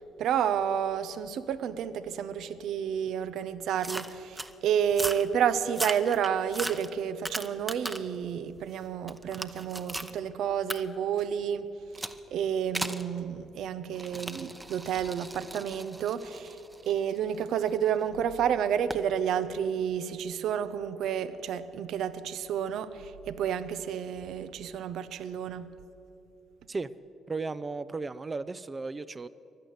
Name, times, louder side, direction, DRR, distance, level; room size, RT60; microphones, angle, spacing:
voice 1, 0.2-11.7 12.3-16.6 16.9-25.7, right 8 dB, 70° right, 14 dB, 0.7 m, -30 dB
sound 1, 3.8-4.5 4.9-5.3 5.7-8.2 8.6-10.1 10.7-10.8 11.9-12.2 12.7-13.1 13.9-17.9 18.9-19.1, right 1 dB, 15° right, 0.9 m, -37 dB
voice 2, 27.3-29.3, right 3 dB, 30° right, 13 dB, 0.5 m, -35 dB
16.0 x 11.0 x 8.0 m, 2.8 s
hypercardioid pair, 55°, 0 cm